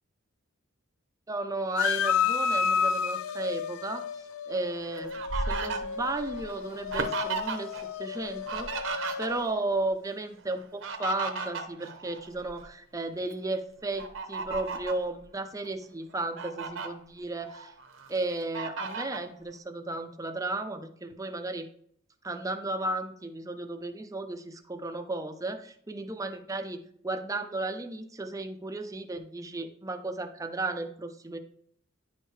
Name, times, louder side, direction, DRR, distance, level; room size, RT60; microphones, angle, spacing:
voice 1, 1.3-4.0 4.5-5.2 5.5-7.7 8.0-17.7 18.1-21.7 22.2-31.4, right 2 dB, 15° right, 8 dB, 0.5 m, -34 dB
sound 1, 1.8-9.5, left 6 dB, 85° left, 0.4 m, -31 dB
Fowl, 4.5-7.8 8.1-9.7 10.6-12.7 13.1-13.3 14.0-15.0 15.6-15.7 16.1-16.9 17.4-18.1 18.5-19.3, right 4 dB, 65° right, 0.8 m, -35 dB
10.0 x 4.6 x 3.3 m, 0.65 s
head